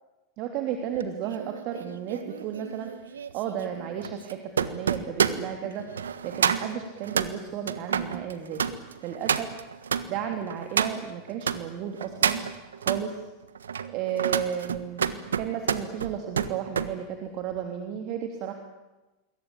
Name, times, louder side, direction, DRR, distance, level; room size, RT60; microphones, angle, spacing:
voice 1, 0.4-5.9 6.2-8.6 9.0-9.5 10.1-12.4 12.8-13.2 13.9-18.5, right 9 dB, 50° right, 5 dB, 3.2 m, -33 dB
sound 1, 1.0-11.6 12.0-13.0 13.6-16.9 17.3-17.6, right 7 dB, 80° right, 1.5 m, -29 dB
27.0 x 22.0 x 8.8 m, 1.1 s
figure-of-eight pair, 90°, 0 cm